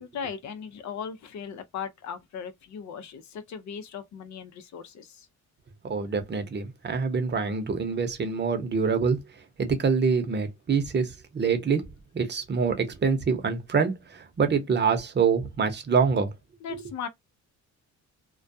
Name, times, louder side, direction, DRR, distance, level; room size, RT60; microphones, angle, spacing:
voice 1, 0.0-5.3 16.6-17.1, left 7 dB, 65° left, 0.6 m, -38 dB
voice 2, 5.8-9.2 9.6-11.8 12.1-16.3, right 5 dB, 35° right, 0.8 m, -25 dB
2.2 x 2.2 x 2.6 m
cardioid pair, 90°, 30 cm